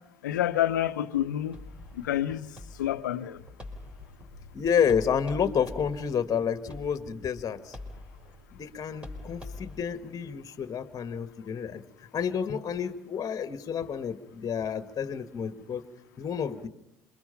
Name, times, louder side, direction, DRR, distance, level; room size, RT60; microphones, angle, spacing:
voice 1, 0.2-1.6 2.0-2.5 2.8-3.4, left 12 dB, 80° left, 0.9 m, -28 dB
sound 1, 1.5-9.8, left 2 dB, 10° right, 4.7 m, -45 dB
voice 2, 4.5-7.8 8.5-11.8 12.1-15.8 16.2-16.7, left 7 dB, 35° left, 1.6 m, -30 dB
27.5 x 24.5 x 5.7 m
hypercardioid pair, 65°, 10 cm